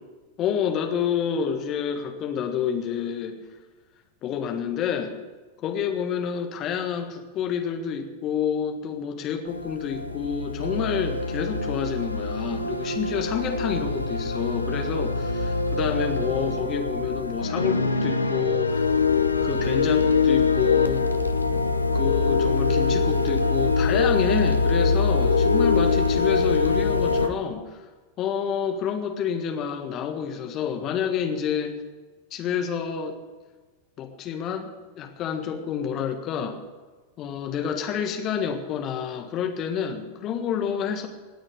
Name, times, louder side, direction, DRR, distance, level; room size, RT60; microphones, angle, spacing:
voice 1, 0.4-3.4 4.2-5.2 5.6-18.9 19.4-21.0 21.9-27.8 28.2-31.8 32.3-33.2 34.0-36.6 37.2-41.1, left 7 dB, 35° left, 5 dB, 1.6 m, -28 dB
sound 1, 9.5-27.3, left 4 dB, 80° left, 0.8 m, -24 dB
18.5 x 6.3 x 8.2 m, 1.3 s
figure-of-eight pair, 90°, 0 cm